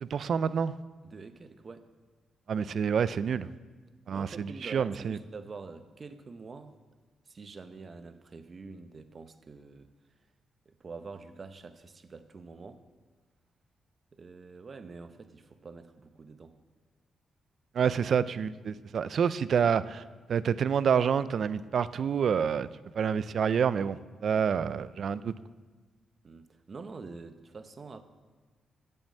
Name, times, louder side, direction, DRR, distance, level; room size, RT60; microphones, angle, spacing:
voice 1, 0.0-0.7 2.5-3.5 4.1-5.2 17.7-20.0 20.3-22.7 22.9-25.3, right 7 dB, 60° right, 16 dB, 0.4 m, -28 dB
voice 2, 1.0-1.9 4.1-6.8 7.3-9.9 10.7-12.8 14.1-16.5 26.2-28.0, right 4 dB, 40° right, 10 dB, 0.7 m, -46 dB
7.9 x 7.2 x 7.4 m, 1.4 s
cardioid pair, 100°, 0 cm